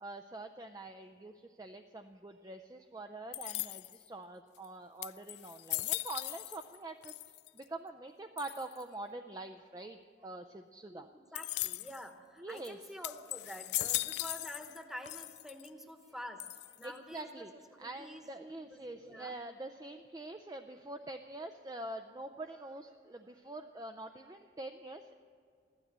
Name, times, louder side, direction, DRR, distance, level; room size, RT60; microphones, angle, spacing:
voice 1, 0.0-7.1 7.5-11.1 12.4-12.8 16.8-17.5 17.8-25.1, right 2 dB, 20° right, 6 dB, 0.4 m, -45 dB
sound 1, 3.3-4.1 4.6-4.7 5.0-6.8 7.0-7.6 8.4-8.8 11.4-12.0 12.6-12.7 13.0-14.8 15.1-15.7 16.4-17.0, left 18 dB, 70° left, 0.3 m, -38 dB
voice 2, 10.9-16.4 16.8-17.5 17.7-19.3, equal, ahead, 5 dB, 1.0 m, -48 dB
15.5 x 12.0 x 7.4 m, 2.2 s
head